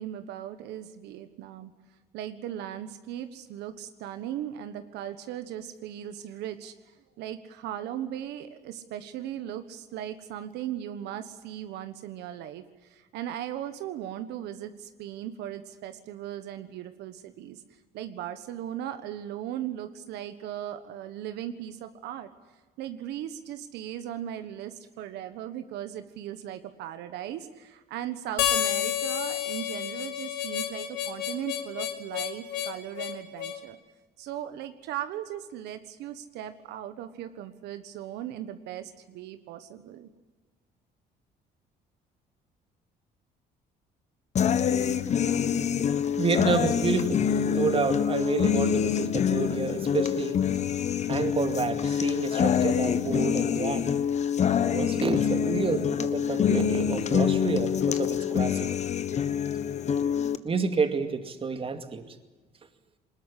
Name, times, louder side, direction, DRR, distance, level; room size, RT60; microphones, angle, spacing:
voice 1, 0.0-1.7 2.1-17.6 17.9-22.3 22.8-33.8 34.2-40.1, right 11 dB, 85° right, 10 dB, 1.4 m, -38 dB
Harmonica, 28.4-33.6, left 11 dB, 85° left, 2.6 m, -30 dB
sound 1, 44.4-60.4, left 8 dB, 45° left, 1.3 m, -26 dB
voice 2, 46.2-50.4 51.1-53.9 54.7-58.7 60.4-62.0, right 5 dB, 35° right, 8 dB, 2.4 m, -29 dB
21.5 x 20.0 x 10.0 m, 1.2 s
cardioid pair, 110°, 17 cm